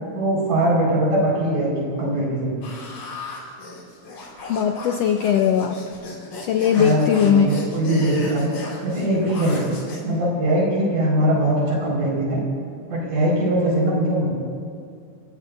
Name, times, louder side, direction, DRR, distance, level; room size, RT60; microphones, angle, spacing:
voice 1, 0.1-2.6 6.8-8.5 8.8-9.6 10.0-12.4 12.9-14.3, right 1 dB, 85° right, -5 dB, 6.4 m, -21 dB
sound 1, 2.6-10.1, left 2 dB, 70° left, 4.0 m, -36 dB
voice 2, 4.5-5.8 6.4-7.5, left 8 dB, 85° left, 5 dB, 1.4 m, -19 dB
29.0 x 16.0 x 2.6 m, 2.2 s
omnidirectional pair, 3.6 m